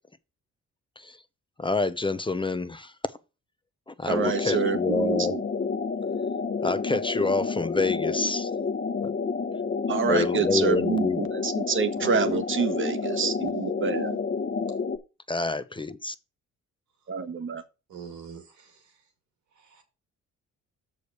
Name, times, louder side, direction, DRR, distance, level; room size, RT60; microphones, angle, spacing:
voice 1, 1.6-2.9 3.9-5.3 6.6-8.5 10.1-11.3 15.3-16.1, left 3 dB, 15° left, 0.6 m, -27 dB
sound 1, 4.1-15.0, left 5 dB, 40° left, 1.2 m, -29 dB
voice 2, 4.1-5.4 9.9-14.2 17.1-17.6, right 5 dB, 40° right, 1.2 m, -27 dB
voice 3, 12.0-12.4 17.9-18.9 19.6-19.8, right 5 dB, 70° right, 2.5 m, -41 dB
6.6 x 4.9 x 6.6 m
cardioid pair, 90°, 30 cm